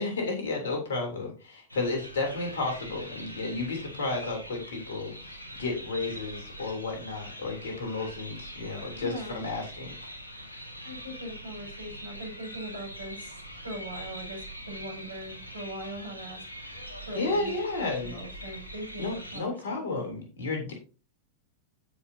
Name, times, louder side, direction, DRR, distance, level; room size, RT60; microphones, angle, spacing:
voice 1, 0.0-9.9 17.1-18.1 19.0-20.7, left 3 dB, 60° left, 2 dB, 3.4 m, -32 dB
sound 1, 1.7-19.4, equal, 85° left, 1.5 m, -43 dB
voice 2, 8.9-9.4 10.8-16.4 17.1-20.1, right 1 dB, 80° right, -1 dB, 5.4 m, -41 dB
15.0 x 5.6 x 2.8 m, 0.34 s
figure-of-eight pair, 90°, 0 cm